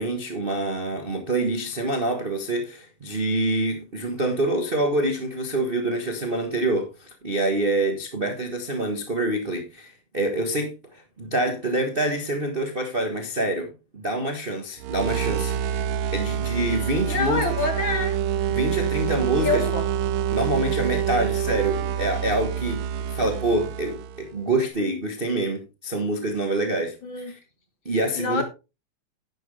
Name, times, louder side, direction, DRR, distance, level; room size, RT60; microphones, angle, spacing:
voice 1, 0.0-17.4 18.5-19.6 20.3-22.8 23.1-26.9 27.3-27.4 27.8-28.4, right 1 dB, 45° right, 0.7 m, -26 dB
sound 1, 14.8-24.3, right 9 dB, 70° right, 1.9 m, -27 dB
voice 2, 17.1-18.2 19.4-19.9 27.0-27.3 28.1-28.4, left 3 dB, 50° left, 1.7 m, -26 dB
10.5 x 9.3 x 3.4 m
omnidirectional pair, 3.6 m